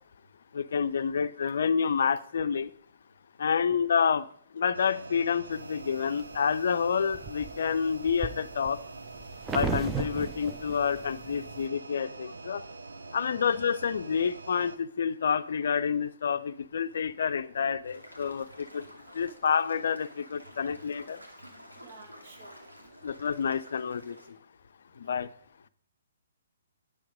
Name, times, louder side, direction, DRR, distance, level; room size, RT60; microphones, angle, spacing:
voice 1, 0.5-2.7 3.4-4.2 4.5-8.8 9.5-12.6 13.1-18.8 19.1-21.2 23.0-24.2 25.0-25.3, left 6 dB, 55° left, 0.5 m, -28 dB
sound 1, 4.7-14.8, right 3 dB, 65° right, 0.8 m, -45 dB
sound 2, 5.6-6.4 6.9-11.7, right 5 dB, 10° right, 0.7 m, -36 dB
voice 2, 13.2-13.5 21.7-22.6 25.0-25.3, right 3 dB, 45° right, 2.3 m, -52 dB
sound 3, 17.8-24.3, equal, 85° right, 2.4 m, -51 dB
10.5 x 7.7 x 5.1 m
figure-of-eight pair, 125°, 0 cm